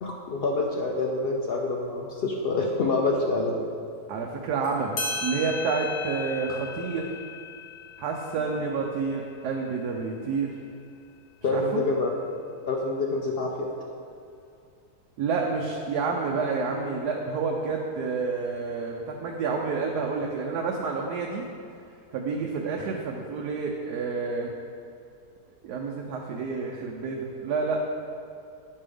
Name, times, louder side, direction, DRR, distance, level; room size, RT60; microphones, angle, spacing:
voice 1, 0.0-3.6 11.4-12.1 12.7-13.5, left 3 dB, 70° left, 0 dB, 0.5 m, -26 dB
voice 2, 4.1-7.2 8.0-10.5 11.5-11.8 15.2-21.5 22.1-24.5 25.6-27.8, right 4 dB, 85° right, 0 dB, 1.2 m, -29 dB
sound 1, 4.6-4.7 5.0-10.1, left 4 dB, 90° left, 1.6 m, -37 dB
9.1 x 5.4 x 3.4 m, 2.4 s
omnidirectional pair, 1.7 m